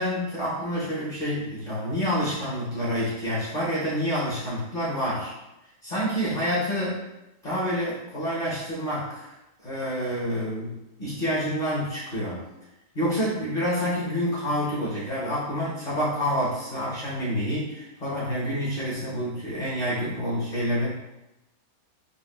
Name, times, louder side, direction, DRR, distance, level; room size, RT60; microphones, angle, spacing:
voice 1, 0.0-5.3 5.8-7.0 7.4-9.3 9.6-12.4 12.9-20.9, equal, 35° left, -8 dB, 0.9 m, -28 dB
5.2 x 2.3 x 2.3 m, 0.96 s
omnidirectional pair, 1.7 m